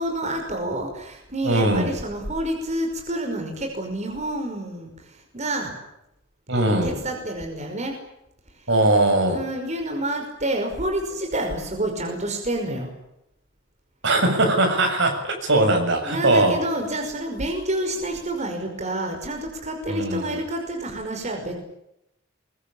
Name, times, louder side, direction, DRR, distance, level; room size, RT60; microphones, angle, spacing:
voice 1, 0.0-4.9 5.3-5.8 6.5-8.0 9.3-12.9 16.1-21.6, right 1 dB, 35° right, 3 dB, 5.5 m, -28 dB
voice 2, 1.4-1.9 6.5-7.0 8.7-9.4 14.0-16.6 19.9-20.4, right 2 dB, 65° right, 4 dB, 7.3 m, -20 dB
24.0 x 23.0 x 8.8 m, 0.82 s
head